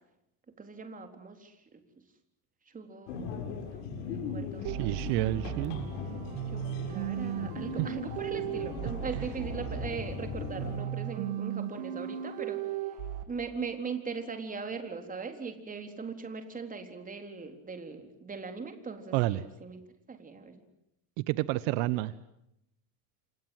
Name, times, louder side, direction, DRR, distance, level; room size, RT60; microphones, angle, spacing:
voice 1, 0.6-1.8 2.7-5.0 6.5-12.7 13.3-19.8 20.1-20.7, right 5 dB, 20° right, 6 dB, 3.9 m, -40 dB
sound 1, 3.1-10.8, left 5 dB, 85° left, 8.0 m, -39 dB
voice 2, 4.6-5.9 7.8-7.9 19.1-19.4 21.3-22.1, right 17 dB, 70° right, 15 dB, 1.3 m, -29 dB
sound 2, 4.6-13.2, right 10 dB, 85° right, 3.0 m, -36 dB
29.0 x 26.5 x 7.8 m, 0.82 s
cardioid pair, 145°, 45 cm